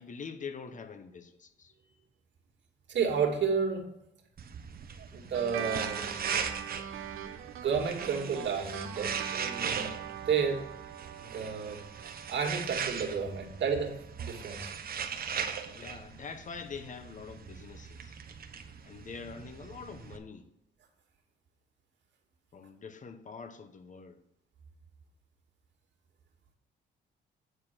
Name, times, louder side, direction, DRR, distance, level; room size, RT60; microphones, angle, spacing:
voice 1, 0.0-1.7 15.7-18.2 18.8-20.5 22.5-24.2, left 5 dB, 40° left, 1.1 m, -44 dB
voice 2, 2.9-3.8 5.0-6.1 7.0-7.1 7.6-9.9 10.3-10.6 11.2-11.8 12.3-13.9 14.2-14.7, right 6 dB, 65° right, 2.2 m, -31 dB
sound 1, 4.4-20.2, right 6 dB, 50° right, 1.1 m, -39 dB
sound 2, 5.3-14.2, right 9 dB, 85° right, 0.9 m, -42 dB
9.4 x 4.4 x 7.5 m
cardioid pair, 90°, 20 cm